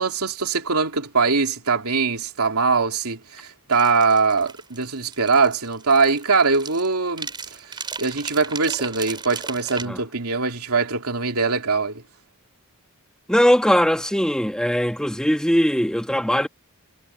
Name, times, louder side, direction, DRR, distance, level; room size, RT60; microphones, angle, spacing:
voice 1, 0.0-7.3 7.7-12.0, right 4 dB, 80° right, 2.9 m, -22 dB
sound 1, 3.7-9.9, right 5 dB, 20° right, 4.1 m, -36 dB
voice 2, 13.3-16.5, equal, 5° left, 1.5 m, -20 dB
head